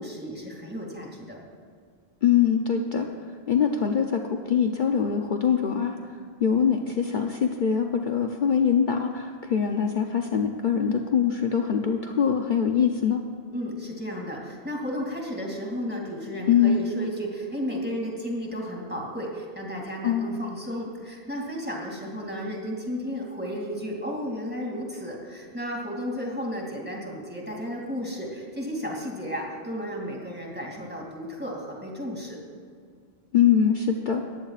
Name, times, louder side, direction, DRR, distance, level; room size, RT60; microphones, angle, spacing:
voice 1, 0.0-1.4 13.5-32.4, equal, 10° right, -2 dB, 2.7 m, -33 dB
voice 2, 2.2-3.1 3.5-6.1 6.4-13.2 16.5-16.8 20.0-20.4 33.3-34.2, left 7 dB, 50° left, 3 dB, 0.8 m, -23 dB
20.5 x 15.0 x 2.5 m, 2.2 s
omnidirectional pair, 1.1 m